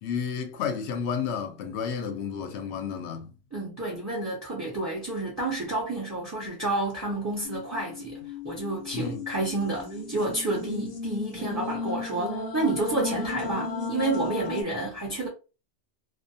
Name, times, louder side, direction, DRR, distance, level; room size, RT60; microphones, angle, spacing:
voice 1, 0.0-3.3 8.9-9.2, left 6 dB, 75° left, 0.8 m, -31 dB
voice 2, 3.5-15.3, right 2 dB, 20° right, 0.7 m, -30 dB
sound 1, 7.4-14.6, left 3 dB, 45° left, 0.7 m, -34 dB
2.4 x 2.2 x 2.6 m
omnidirectional pair, 1.1 m